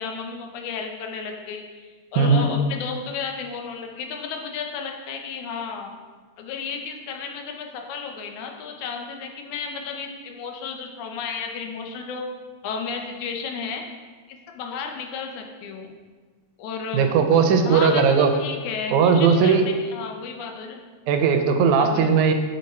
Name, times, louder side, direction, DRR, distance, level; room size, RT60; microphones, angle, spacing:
voice 1, 0.0-5.9 6.4-12.2 12.6-13.8 14.3-15.9 16.6-17.1 17.6-20.8 21.8-22.1, left 5 dB, 85° left, 3 dB, 2.1 m, -33 dB
voice 2, 2.2-2.5 16.9-18.3 18.9-19.6 21.1-22.3, right 6 dB, 85° right, 6 dB, 2.0 m, -18 dB
6.2 x 5.4 x 4.2 m, 1.5 s
omnidirectional pair, 3.4 m